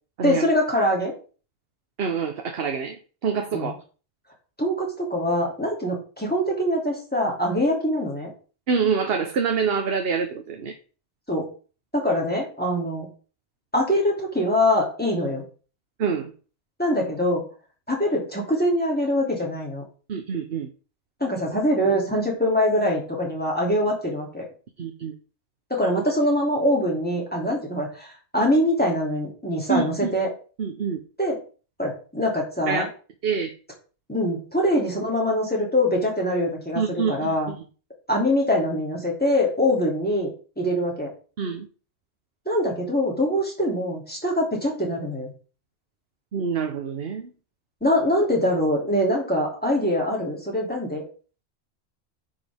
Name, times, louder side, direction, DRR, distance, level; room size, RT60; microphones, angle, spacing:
voice 1, 0.2-1.1 3.5-3.7 4.6-8.3 11.3-11.5 11.9-13.1 13.7-15.4 16.8-17.4 17.9-19.8 21.2-24.4 25.7-30.3 31.2-31.4 31.8-32.9 34.1-37.5 38.1-40.3 40.6-41.1 42.5-45.3 47.8-51.0, left 1 dB, 10° left, 2.9 m, -23 dB
voice 2, 2.0-3.7 8.7-10.7 16.0-16.3 20.1-20.7 24.8-25.1 29.7-30.1 30.6-31.0 32.7-32.9 33.2-33.5 36.8-37.6 41.4-41.7 46.3-47.3, right 6 dB, 65° right, 1.1 m, -26 dB
9.5 x 5.5 x 3.5 m
omnidirectional pair, 1.1 m